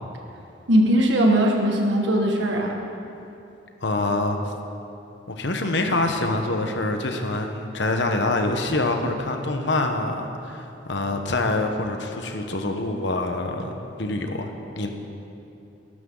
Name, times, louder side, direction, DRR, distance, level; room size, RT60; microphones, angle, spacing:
voice 1, 0.7-2.7, right 1 dB, 75° right, 0 dB, 2.0 m, -19 dB
voice 2, 3.8-4.5 5.3-14.5 14.8-14.9, left 2 dB, 70° left, 4 dB, 1.2 m, -25 dB
19.0 x 11.5 x 4.0 m, 2.8 s
head